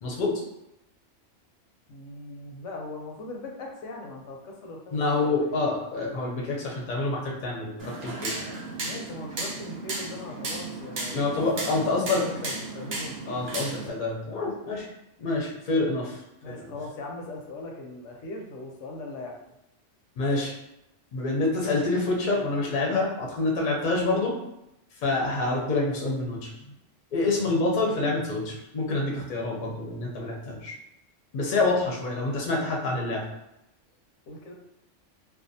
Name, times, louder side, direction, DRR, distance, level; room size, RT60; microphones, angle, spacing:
voice 1, 0.0-0.4 4.9-8.3 11.1-12.2 13.3-14.9 15.2-16.2 16.5-16.7 20.2-20.5 21.1-24.3 25.0-26.5 27.1-30.7 31.3-33.3, left 2 dB, 50° left, -2 dB, 0.6 m, -27 dB
voice 2, 1.9-5.6 8.8-13.2 16.4-19.4 34.3-34.5, left 2 dB, 85° left, 1 dB, 0.9 m, -40 dB
sound 1, 7.8-13.9, right 2 dB, 60° right, 0.8 m, -35 dB
2.5 x 2.2 x 2.6 m, 0.88 s
omnidirectional pair, 1.3 m